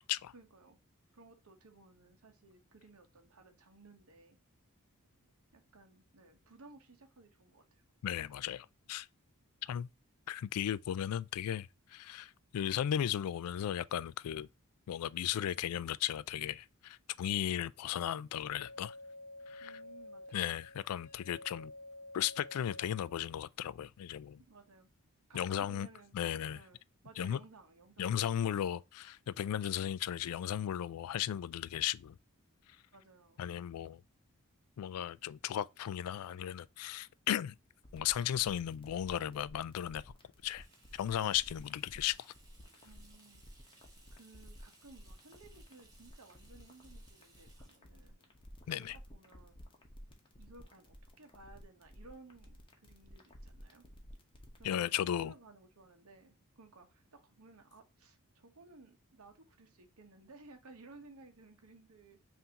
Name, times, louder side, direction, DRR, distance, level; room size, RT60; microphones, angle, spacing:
voice 1, 0.3-0.8 1.1-4.4 5.5-7.8 19.6-20.5 24.4-24.9 25.3-26.2 26.5-26.8 27.0-28.6 32.9-33.4 42.8-48.1 48.6-49.7 50.4-53.9 54.5-62.2, right 3 dB, 70° right, 1.0 m, -58 dB
voice 2, 8.0-9.1 9.6-9.9 10.3-14.5 14.9-18.9 19.5-19.7 20.3-21.7 22.1-24.4 25.3-25.9 26.1-26.6 27.2-27.4 28.0-32.2 33.4-34.0 34.8-37.5 37.9-40.0 40.4-40.7 40.9-42.3 48.7-49.0 54.6-55.3, left 10 dB, 75° left, 0.3 m, -36 dB
sound 1, 18.3-23.2, left 2 dB, 5° left, 1.7 m, -51 dB
sound 2, 37.8-54.6, equal, 20° left, 0.9 m, -54 dB
Water tap faucet / Sink (filling or washing), 40.3-49.7, right 2 dB, 15° right, 1.3 m, -65 dB
5.6 x 2.7 x 2.8 m
head